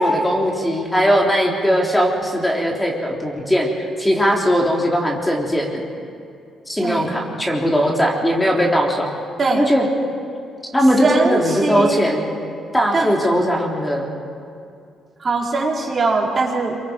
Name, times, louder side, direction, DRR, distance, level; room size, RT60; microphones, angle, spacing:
voice 1, 0.0-5.8 6.7-9.2 9.5-9.9 10.7-12.3 12.7-14.1, equal, 10° left, -1 dB, 3.6 m, -19 dB
voice 2, 11.0-12.0 12.9-13.1 15.2-16.8, right 3 dB, 40° right, -2 dB, 4.0 m, -21 dB
27.0 x 24.0 x 5.3 m, 2.4 s
cardioid pair, 90°, 0 cm